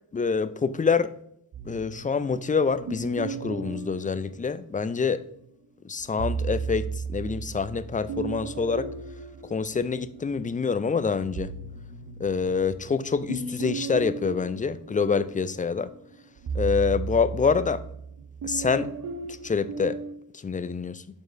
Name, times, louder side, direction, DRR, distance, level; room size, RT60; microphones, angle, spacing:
voice 1, 0.1-1.1 1.7-5.2 5.8-8.9 9.5-11.5 12.2-15.9 16.5-17.8 18.4-18.9 19.3-20.0 20.4-21.0, left 5 dB, 20° left, 0.4 m, -26 dB
sound 1, 1.5-5.0 6.0-10.4 10.9-20.1, right 5 dB, 50° right, 0.9 m, -36 dB
6.7 x 4.4 x 3.3 m
hypercardioid pair, 40°, 43 cm